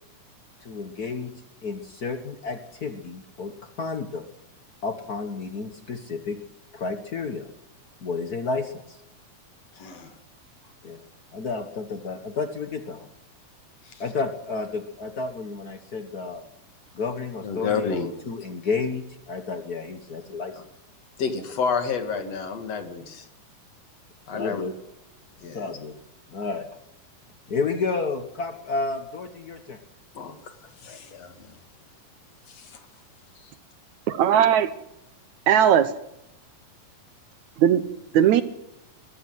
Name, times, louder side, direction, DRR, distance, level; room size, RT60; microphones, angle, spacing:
voice 1, 0.6-1.3 1.6-4.2 4.8-6.4 6.7-7.5 8.0-9.0 10.8-11.0 11.3-13.1 14.0-16.5 16.9-17.9 18.3-20.6 24.3-24.7 25.5-26.0 26.3-26.7 27.5-29.8, left 4 dB, 85° left, 8 dB, 0.8 m, -31 dB
voice 2, 9.8-10.1 13.9-14.0 17.4-18.1 21.2-23.3 24.3-24.6 25.4-25.8 30.1-30.5 30.8-31.3 32.5-32.8, left 5 dB, 50° left, 7 dB, 3.1 m, -30 dB
voice 3, 34.1-34.7 35.5-35.9 37.6-37.8 38.1-38.4, right 9 dB, 70° right, 14 dB, 2.0 m, -18 dB
22.0 x 15.0 x 7.9 m, 0.85 s
omnidirectional pair, 3.9 m